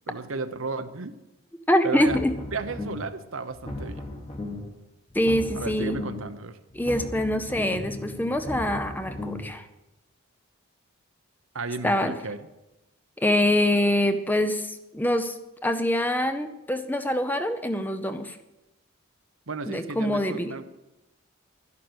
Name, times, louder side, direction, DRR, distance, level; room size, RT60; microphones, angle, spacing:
voice 1, 0.1-1.1 1.8-2.2 2.5-4.1 5.5-6.6 11.5-12.5 19.5-20.6, right 3 dB, 75° right, 10 dB, 0.9 m, -33 dB
voice 2, 1.7-2.3 5.1-6.0 6.7-9.7 11.8-12.2 13.2-15.4 15.6-18.4 19.7-20.5, left 1 dB, 10° left, 9 dB, 0.7 m, -25 dB
sound 1, 1.9-3.2 3.5-4.8 5.1-6.4 6.7-9.5, left 1 dB, 30° left, 1.6 m, -36 dB
12.0 x 11.0 x 6.3 m, 0.98 s
head